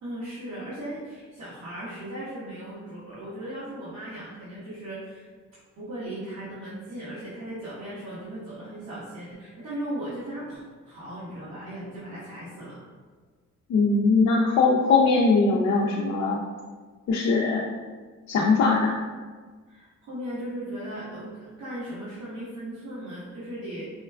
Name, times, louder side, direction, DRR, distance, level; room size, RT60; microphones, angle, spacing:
voice 1, 0.0-5.3 5.8-12.8 19.7-23.9, right 1 dB, 60° right, -11 dB, 1.2 m, -37 dB
voice 2, 13.7-16.4 17.1-17.7 18.3-19.0, left 4 dB, 55° left, -1 dB, 0.5 m, -21 dB
4.9 x 2.3 x 2.2 m, 1.5 s
cardioid pair, 90°, 30 cm